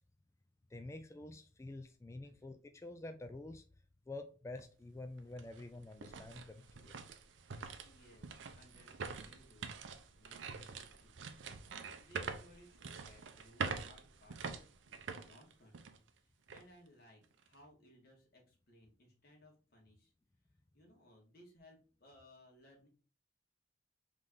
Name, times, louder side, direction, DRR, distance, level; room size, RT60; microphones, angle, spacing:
voice 1, 0.7-3.6 4.1-7.0, left 2 dB, 15° left, 7 dB, 0.3 m, -48 dB
sound 1, 4.6-4.7 5.2-16.1 16.5-16.6 17.2-17.5, right 5 dB, 80° right, 0.6 m, -45 dB
voice 2, 7.8-20.1 20.5-22.9, left 1 dB, 55° left, -1 dB, 1.7 m, -63 dB
3.7 x 3.2 x 3.7 m, 0.37 s
head